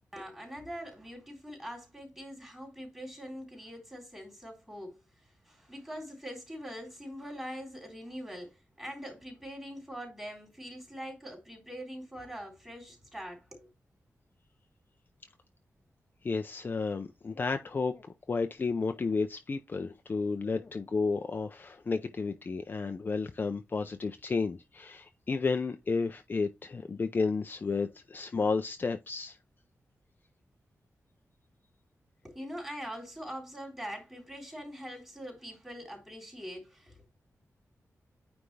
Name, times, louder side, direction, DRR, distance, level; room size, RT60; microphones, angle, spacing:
voice 1, 0.1-13.7 32.2-37.1, equal, 10° right, 3.6 m, -43 dB
voice 2, 16.2-29.4, left 4 dB, 35° left, 0.5 m, -32 dB
9.3 x 3.4 x 3.3 m
wide cardioid pair, 160°, 6 cm